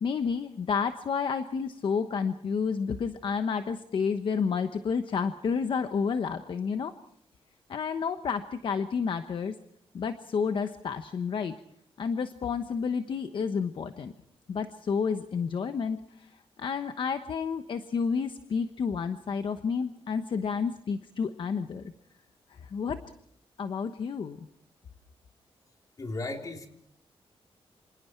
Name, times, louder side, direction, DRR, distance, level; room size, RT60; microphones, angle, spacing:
voice 1, 0.0-6.9 7.7-9.5 9.9-11.5 12.0-14.1 14.5-16.3 16.6-21.9 22.5-23.0 23.6-24.4, left 6 dB, 55° left, 9 dB, 1.1 m, -30 dB
voice 2, 26.0-26.7, left 2 dB, 35° left, 3 dB, 3.5 m, -35 dB
28.0 x 26.5 x 4.6 m, 0.65 s
wide cardioid pair, 150°, 10 cm